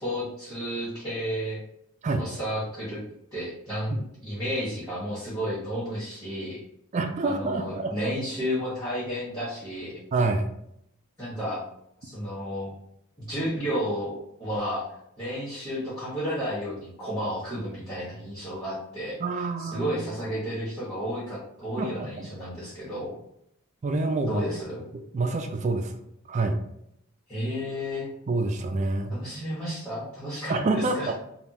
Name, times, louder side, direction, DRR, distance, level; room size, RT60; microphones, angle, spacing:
voice 1, 0.0-1.6 2.2-3.0 3.3-6.6 7.2-10.0 11.2-11.6 12.0-12.7 13.2-14.8 15.2-19.2 19.6-23.1 24.3-24.8 27.3-28.1 29.1-31.1, equal, 15° left, -12 dB, 1.2 m, -32 dB
voice 2, 6.9-8.2 10.1-10.5 19.2-20.1 21.8-22.3 23.8-24.6 25.1-26.0 26.3-26.6 28.3-29.1 30.5-31.1, right 3 dB, 35° right, 6 dB, 0.3 m, -27 dB
3.5 x 2.3 x 2.8 m, 0.76 s
head